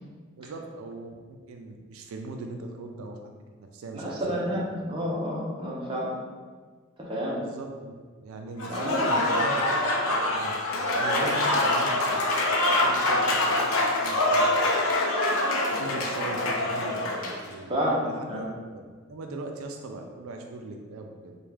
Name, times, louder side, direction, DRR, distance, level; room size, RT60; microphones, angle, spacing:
voice 1, 0.4-3.3 3.6-4.2 4.4-4.6 7.4-7.9 8.2-9.9 10.2-10.5 10.9-12.2 12.5-14.6 15.8-18.4 18.7-21.3, right 2 dB, 90° right, 3 dB, 0.3 m, -39 dB
voice 2, 3.9-6.1 7.1-7.4 8.7-9.2 17.7-18.0 18.3-18.4, equal, 25° right, -5 dB, 0.6 m, -29 dB
Applause / Crowd, 8.6-17.4, left 1 dB, 90° left, 0.5 m, -25 dB
3.5 x 2.2 x 3.3 m, 1.5 s
head